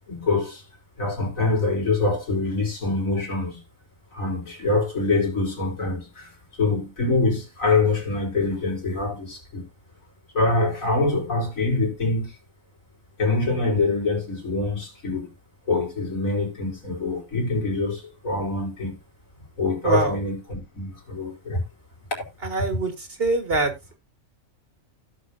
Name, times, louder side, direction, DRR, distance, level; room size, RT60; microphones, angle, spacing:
voice 1, 0.1-0.6 1.0-3.6 4.1-9.7 10.3-12.4 13.2-15.3 15.7-19.0 19.6-21.6, left 3 dB, 90° left, 4.1 m, -25 dB
voice 2, 19.8-20.2 22.4-23.7, right 2 dB, 45° right, 1.9 m, -24 dB
16.5 x 6.3 x 2.6 m
omnidirectional pair, 1.4 m